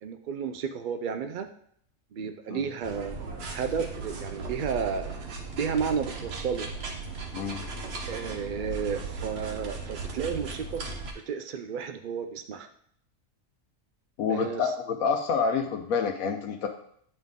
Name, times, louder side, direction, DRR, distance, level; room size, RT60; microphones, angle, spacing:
voice 1, 0.0-1.5 2.1-5.1 5.5-6.7 8.1-10.9 11.3-12.7 14.3-14.7, right 6 dB, 85° right, 8 dB, 0.4 m, -32 dB
sound 1, 2.8-11.1, right 3 dB, 50° right, 1.1 m, -37 dB
voice 2, 7.3-7.6 14.2-16.7, left 6 dB, 85° left, 4 dB, 1.1 m, -28 dB
9.7 x 3.9 x 3.6 m, 0.65 s
omnidirectional pair, 1.4 m